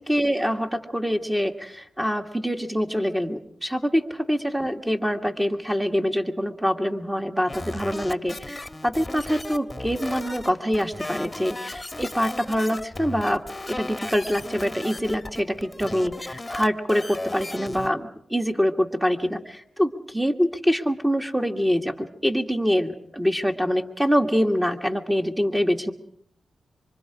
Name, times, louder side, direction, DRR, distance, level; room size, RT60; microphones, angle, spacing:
voice 1, 0.1-25.9, equal, 10° right, 3 dB, 1.8 m, -25 dB
sound 1, 7.5-17.9, left 2 dB, 20° left, 1.4 m, -36 dB
26.5 x 24.5 x 5.0 m, 0.66 s
cardioid pair, 70°, 0 cm